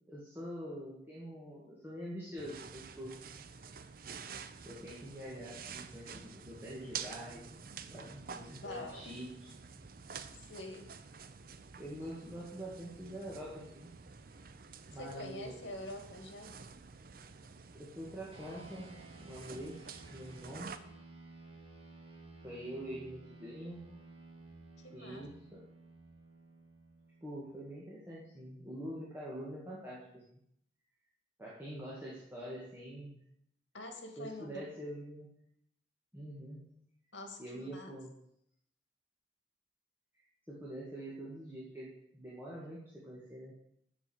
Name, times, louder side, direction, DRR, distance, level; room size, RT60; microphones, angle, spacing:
voice 1, 0.1-3.2 4.6-7.4 7.9-9.5 11.8-13.9 14.3-14.4 14.9-15.7 17.7-20.7 22.4-23.8 24.9-25.6 27.2-30.2 31.4-33.2 34.2-35.3 36.1-36.7 37.4-38.1 40.5-43.5, equal, 10° right, -7 dB, 2.2 m, -45 dB
sound 1, 2.4-20.8, right 6 dB, 50° right, 0.6 m, -49 dB
voice 2, 8.6-9.0 10.3-10.9 15.0-16.5 24.8-25.3 33.7-34.5 37.1-37.9, left 1 dB, 80° left, 5 dB, 2.0 m, -45 dB
sound 2, 18.3-28.1, right 3 dB, 30° right, 2.4 m, -55 dB
7.3 x 6.9 x 8.1 m, 0.74 s
head